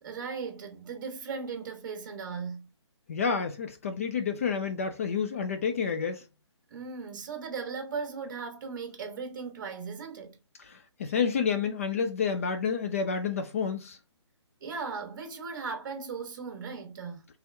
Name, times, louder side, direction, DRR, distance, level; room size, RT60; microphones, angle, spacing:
voice 1, 0.0-2.7 6.7-10.4 14.6-17.3, right 5 dB, 45° right, 1.1 m, -37 dB
voice 2, 3.1-6.2 10.6-14.0, left 6 dB, 30° left, 0.3 m, -29 dB
3.3 x 2.9 x 3.3 m
hypercardioid pair, 160°, 15 cm